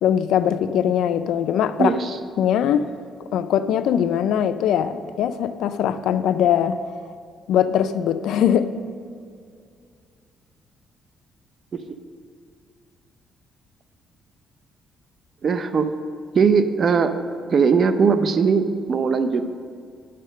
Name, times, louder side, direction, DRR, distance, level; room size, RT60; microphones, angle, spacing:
voice 1, 0.0-1.9 2.4-2.9 3.3-6.8 7.5-8.7, left 9 dB, 85° left, 10 dB, 0.4 m, -21 dB
voice 2, 1.8-2.2 11.7-11.8 15.4-15.9 16.3-17.2 17.5-19.6, right 5 dB, 50° right, 10 dB, 0.7 m, -19 dB
10.0 x 6.7 x 6.5 m, 2.2 s
cardioid pair, 90°, 0 cm